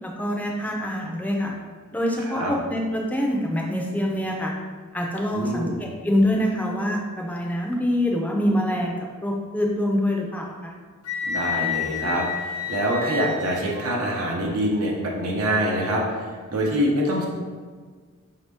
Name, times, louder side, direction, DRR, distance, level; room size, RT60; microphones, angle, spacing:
voice 1, 0.0-1.5 1.9-4.5 4.9-10.7, left 1 dB, 5° left, -1 dB, 0.5 m, -25 dB
voice 2, 2.2-2.5 5.3-5.8 11.3-17.3, equal, 75° right, -2 dB, 0.7 m, -25 dB
Wind instrument woodwind instrument, 11.0-13.8, left 6 dB, 90° left, 0.8 m, -29 dB
5.1 x 2.8 x 3.4 m, 1.5 s
head